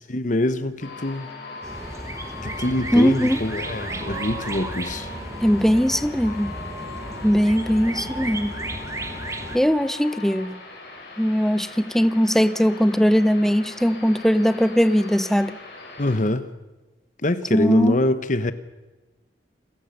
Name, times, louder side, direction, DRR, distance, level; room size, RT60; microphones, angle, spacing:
voice 1, 0.1-1.3 2.4-5.1 16.0-16.4 17.2-18.5, left 1 dB, 45° left, 1.1 m, -24 dB
sound 1, 0.8-16.2, left 3 dB, 70° left, 6.0 m, -39 dB
sound 2, 1.6-9.6, right 1 dB, 15° right, 1.4 m, -34 dB
voice 2, 2.9-3.4 5.4-6.5 7.2-8.5 9.5-10.6 11.2-15.6 17.5-18.0, equal, ahead, 0.6 m, -20 dB
28.5 x 16.0 x 6.7 m
head